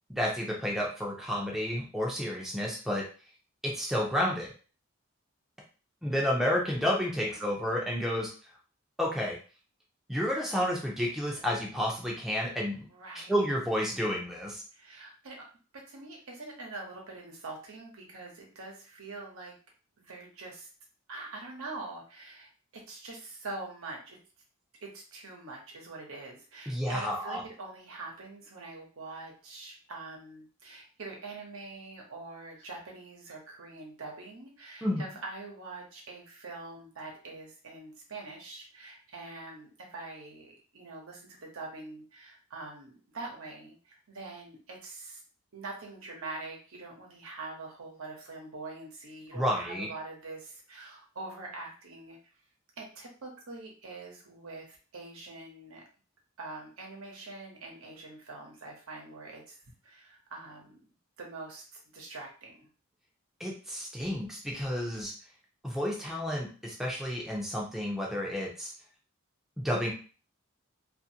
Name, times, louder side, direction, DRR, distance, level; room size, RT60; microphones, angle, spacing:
voice 1, 0.1-3.0 3.6-4.5 6.0-8.3 9.0-9.4 10.1-12.8 13.1-14.6 26.7-27.4 34.8-35.0 49.3-49.9 63.4-65.1 65.6-68.7 69.6-69.9, equal, ahead, -3 dB, 0.5 m, -31 dB
voice 2, 12.9-13.4 14.7-15.5 15.7-19.5 20.0-20.7 21.1-24.2 24.8-45.2 45.5-52.2 52.8-55.8 56.4-59.6 59.8-60.8 61.2-62.7, right 3 dB, 80° right, 0 dB, 0.9 m, -44 dB
2.6 x 2.5 x 2.8 m, 0.37 s
head